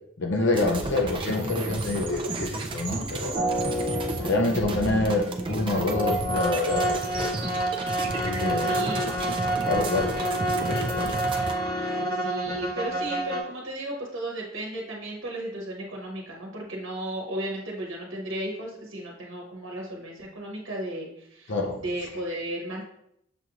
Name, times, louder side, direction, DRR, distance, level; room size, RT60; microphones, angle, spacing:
voice 1, 0.2-3.3 4.2-7.0 8.2-8.8 9.7-10.2 10.6-11.5 12.5-12.6 21.5-21.8, left 2 dB, 60° left, 2 dB, 0.6 m, -27 dB
sound 1, 0.5-11.5, right 2 dB, 25° right, 0.4 m, -33 dB
sound 2, 3.3-13.4, right 1 dB, 15° left, 0.8 m, -29 dB
voice 2, 8.6-9.1 12.1-22.9, right 1 dB, 65° right, -2 dB, 1.1 m, -34 dB
6.8 x 2.5 x 2.9 m, 0.74 s
head